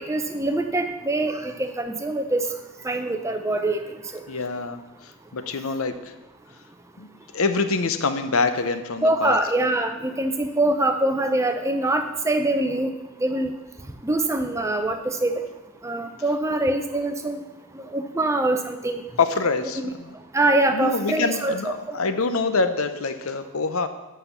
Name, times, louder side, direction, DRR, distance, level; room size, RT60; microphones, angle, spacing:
voice 1, 0.0-2.4 2.8-3.8 4.1-4.2 9.0-12.9 13.2-13.5 14.0-15.4 15.8-17.4 17.9-19.0 19.8-19.9 20.3-21.7, right 2 dB, 15° right, 6 dB, 0.5 m, -24 dB
voice 2, 4.3-4.8 5.3-6.1 7.0-7.1 7.3-9.4 19.2-20.2 20.7-23.9, left 4 dB, 70° left, 9 dB, 0.7 m, -25 dB
8.3 x 5.7 x 6.8 m, 1.1 s
head